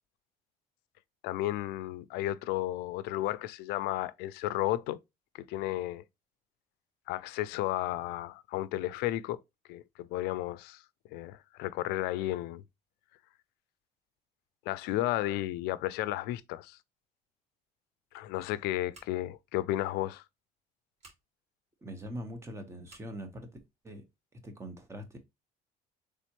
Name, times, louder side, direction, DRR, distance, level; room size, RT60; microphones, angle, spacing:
voice 1, 1.2-5.0 5.3-6.0 7.1-9.4 9.7-10.8 11.1-12.6 14.7-16.8 18.1-20.2, left 15 dB, 85° left, 0.4 m, -33 dB
Scissors, 18.9-19.4 21.0-21.2 22.8-23.1, right 2 dB, 45° right, 2.5 m, -56 dB
voice 2, 21.8-23.5 23.8-24.0 24.3-25.2, equal, 15° right, 1.0 m, -42 dB
4.2 x 3.5 x 2.9 m
cardioid pair, 120°, 16 cm